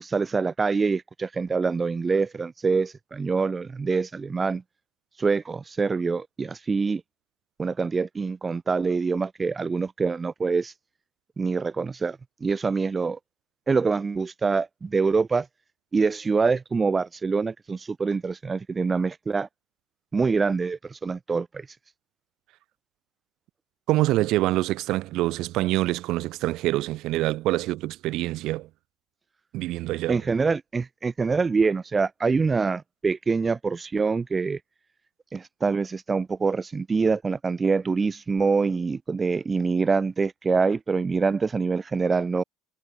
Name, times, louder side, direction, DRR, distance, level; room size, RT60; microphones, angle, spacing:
voice 1, 0.0-4.6 5.2-7.0 7.6-10.7 11.4-13.2 13.7-15.5 15.9-19.5 20.1-21.7 30.1-34.6 35.3-42.4, right 4 dB, 25° right, 0.6 m, -25 dB
voice 2, 23.9-28.7 29.5-30.2, right 17 dB, 60° right, 1.1 m, -25 dB
hypercardioid pair, 70°, 0 cm